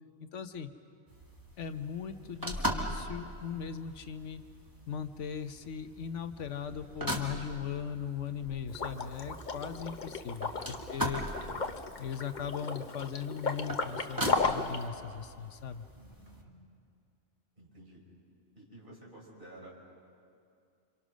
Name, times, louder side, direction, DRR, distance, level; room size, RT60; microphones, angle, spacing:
voice 1, 0.2-0.7 1.6-4.4 4.9-11.2 12.0-15.9, left 7 dB, 80° left, 9 dB, 1.2 m, -39 dB
sound 1, 1.1-16.4, equal, 15° right, 2.0 m, -40 dB
Liquid, 8.7-14.8, left 4 dB, 40° left, 1.1 m, -35 dB
voice 2, 10.4-11.1 15.9-16.6 17.6-18.0 18.6-19.7, right 1 dB, 45° right, -3 dB, 5.7 m, -53 dB
27.5 x 26.5 x 6.3 m, 2.4 s
omnidirectional pair, 1.2 m